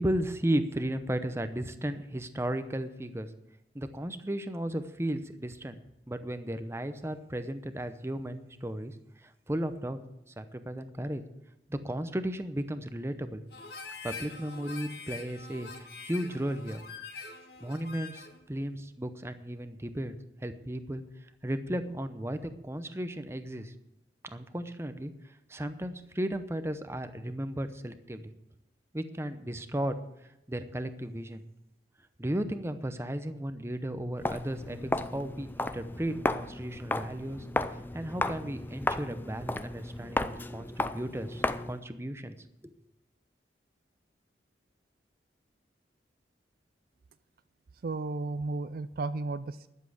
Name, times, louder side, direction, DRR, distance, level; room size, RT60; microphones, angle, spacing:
voice 1, 0.0-3.3 3.7-5.8 6.1-10.0 10.4-11.2 11.7-13.4 14.0-16.8 17.6-20.1 20.4-23.7 24.2-28.3 28.9-31.4 32.2-37.5 37.9-42.4 42.6-42.7, right 1 dB, 15° right, 10 dB, 0.7 m, -35 dB
Harmonica, 13.5-18.4, left 4 dB, 60° left, 1.8 m, -44 dB
Walk footsteps, 34.2-41.8, left 2 dB, 10° left, 0.4 m, -34 dB
voice 2, 47.8-49.7, right 3 dB, 55° right, 14 dB, 0.4 m, -34 dB
12.0 x 7.5 x 7.9 m, 0.89 s
head